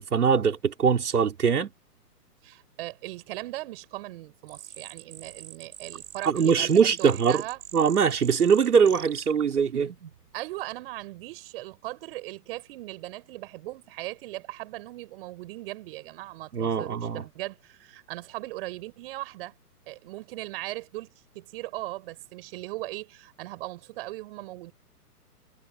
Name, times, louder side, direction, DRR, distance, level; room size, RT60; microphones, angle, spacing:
voice 1, 0.0-1.7 6.2-7.4 7.7-9.9 16.5-17.2, right 6 dB, 65° right, 3.5 m, -22 dB
voice 2, 2.4-7.6 10.3-19.5 19.9-21.1 21.3-24.7, right 18 dB, 35° right, 5.2 m, -38 dB
sound 1, 4.5-10.3, right 10 dB, 50° right, 6.5 m, -43 dB
figure-of-eight pair, 135°, 48 cm